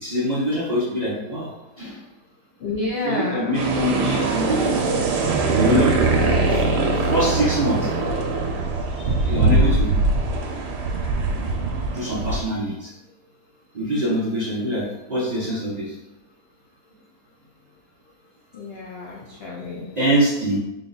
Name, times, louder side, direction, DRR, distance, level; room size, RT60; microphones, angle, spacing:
voice 1, 0.0-1.5 1.8-2.0 3.0-4.9 5.5-5.9 6.5-6.6 7.0-7.9 9.0-9.9 11.9-12.9 13.7-15.9 20.0-20.6, equal, 40° right, -7 dB, 0.6 m, -24 dB
voice 2, 2.6-3.5 18.5-19.9, left 2 dB, 85° left, -2 dB, 0.5 m, -29 dB
sound 1, 3.5-12.4, right 3 dB, 85° right, 1.2 m, -22 dB
3.8 x 2.3 x 3.9 m, 0.97 s
omnidirectional pair, 1.7 m